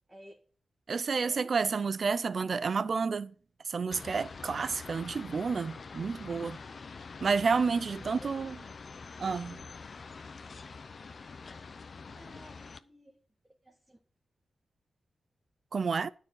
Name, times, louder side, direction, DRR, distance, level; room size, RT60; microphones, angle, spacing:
voice 1, 0.1-0.4 1.2-1.5 8.0-8.6 12.1-13.2 13.6-14.0, right 1 dB, 10° right, 1.6 m, -53 dB
voice 2, 0.9-3.3 3.7-6.6 7.2-8.5 9.2-9.6 15.7-16.1, right 5 dB, 45° right, 0.4 m, -30 dB
sound 1, 3.9-12.8, left 4 dB, 40° left, 0.6 m, -45 dB
12.5 x 4.7 x 8.4 m
wide cardioid pair, 170°, 0 cm